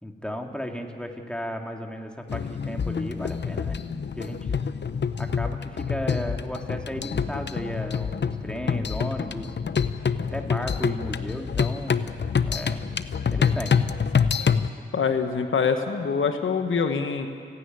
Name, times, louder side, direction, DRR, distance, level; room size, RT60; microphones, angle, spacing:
voice 1, 0.0-3.8 4.1-4.6 5.2-9.5 10.3-12.1 12.4-12.9 13.3-13.8, equal, 5° left, 2 dB, 2.8 m, -34 dB
sound 1, 2.3-14.7, left 6 dB, 65° left, 0.8 m, -26 dB
voice 2, 14.9-17.3, left 5 dB, 85° left, 7 dB, 1.1 m, -24 dB
29.0 x 10.0 x 9.6 m, 2.4 s
cardioid pair, 45°, 20 cm